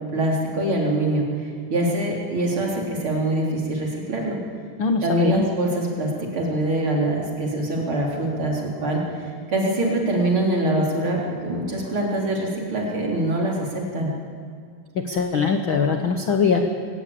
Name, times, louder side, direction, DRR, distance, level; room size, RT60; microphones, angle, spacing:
voice 1, 0.1-1.3 1.7-4.4 5.0-9.0 9.5-14.1, right 1 dB, 35° right, -2 dB, 4.2 m, -24 dB
voice 2, 4.8-5.4 14.9-16.7, left 5 dB, 65° left, 5 dB, 1.3 m, -22 dB
23.0 x 18.5 x 8.7 m, 2.2 s
omnidirectional pair, 4.2 m